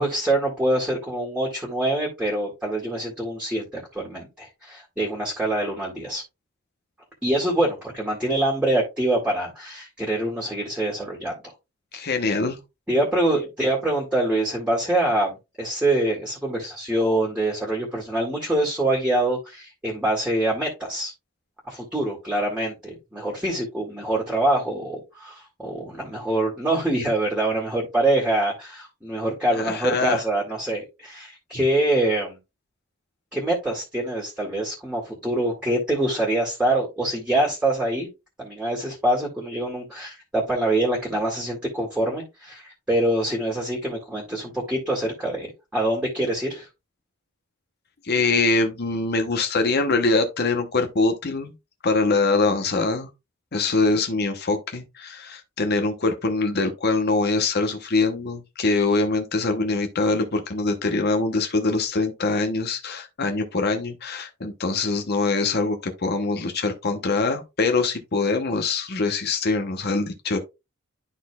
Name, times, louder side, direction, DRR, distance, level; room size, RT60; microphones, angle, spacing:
voice 1, 0.0-6.2 7.2-11.5 12.9-21.1 21.7-32.4 33.3-38.1 38.4-45.5 45.7-46.7, right 1 dB, 5° right, 2.0 m, -25 dB
voice 2, 11.9-12.6 29.5-30.2 48.0-51.5 51.8-53.1 53.5-70.4, left 3 dB, 50° left, 0.9 m, -23 dB
11.5 x 4.1 x 2.3 m
head